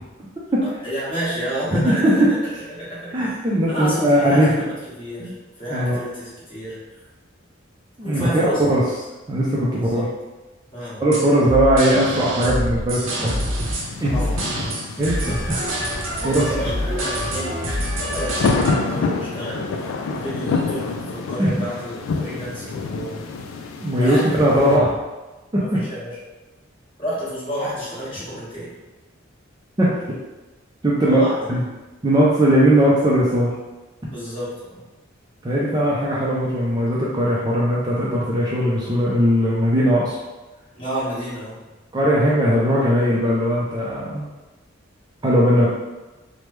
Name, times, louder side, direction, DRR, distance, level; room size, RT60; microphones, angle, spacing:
voice 1, 0.6-2.4 2.7-3.4 3.7-7.0 8.0-8.6 9.7-10.1 10.7-11.0 14.1-14.4 16.4-17.6 18.0-23.3 24.0-24.8 25.6-26.2 27.0-28.7 31.0-31.6 34.0-34.8 40.8-41.7, right 1 dB, 25° left, -10 dB, 1.4 m, -30 dB
voice 2, 1.7-2.3 3.1-4.5 5.2-5.3 5.7-6.0 8.0-8.8 9.3-10.1 11.0-13.4 14.0-14.2 15.0-16.5 21.4-21.5 23.8-24.9 25.5-25.8 29.8-29.9 30.8-31.2 31.5-31.6 32.0-33.5 35.4-40.2 41.9-44.3 45.2-45.7, equal, 20° right, -6 dB, 0.4 m, -19 dB
sound 1, 11.1-18.8, equal, 80° right, 0.7 m, -26 dB
sound 2, 13.6-24.8, left 4 dB, 80° left, 0.3 m, -28 dB
3.2 x 2.1 x 3.1 m, 1.1 s
head